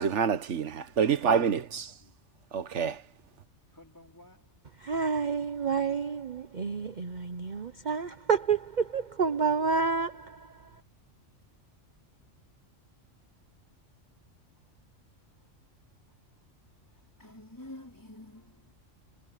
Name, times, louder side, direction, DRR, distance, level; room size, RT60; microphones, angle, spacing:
voice 1, 0.0-1.8 2.5-2.9, right 7 dB, 65° right, 1.4 m, -27 dB
voice 2, 1.1-2.1 3.7-4.4 4.8-4.9 17.2-18.7, left 1 dB, 15° left, 4.8 m, -50 dB
voice 3, 4.8-10.1, right 5 dB, 40° right, 0.9 m, -29 dB
omnidirectional pair, 1.3 m